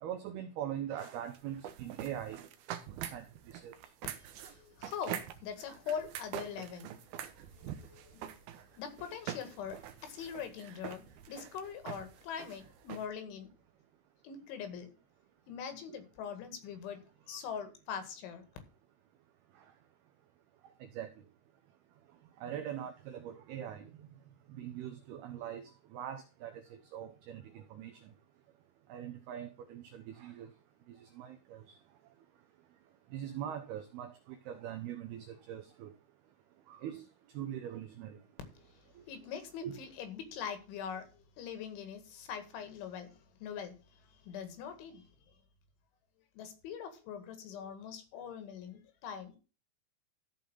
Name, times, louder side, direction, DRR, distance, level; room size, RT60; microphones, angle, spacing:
voice 1, 0.0-2.4 3.0-3.7 15.9-16.0 20.8-21.1 22.4-23.9 24.6-28.1 28.9-30.5 30.9-31.8 33.1-35.9 36.7-37.1 37.3-38.2 39.6-39.8, right 10 dB, 90° right, 2.2 m, -42 dB
sound 1, 1.0-13.1, right 10 dB, 75° right, 2.4 m, -44 dB
voice 2, 4.2-6.9 7.5-8.4 8.8-13.5 14.2-14.9 15.5-17.0 17.3-18.5 38.6-43.7 44.2-45.1 46.4-49.4, left 7 dB, 70° left, 4.3 m, -43 dB
14.5 x 5.4 x 5.5 m
omnidirectional pair, 5.7 m